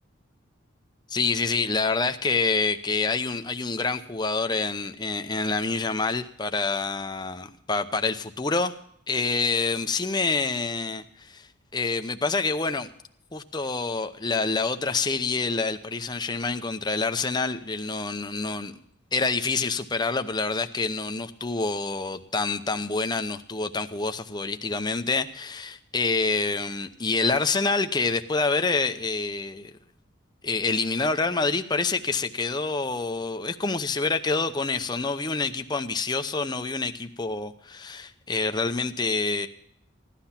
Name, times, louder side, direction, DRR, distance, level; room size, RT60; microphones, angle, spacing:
voice 1, 1.1-8.7 9.1-11.5 11.7-12.9 13.3-18.7 19.1-29.7 30.4-39.5, left 3 dB, 20° left, 8 dB, 0.7 m, -27 dB
16.5 x 12.0 x 5.8 m, 0.69 s
head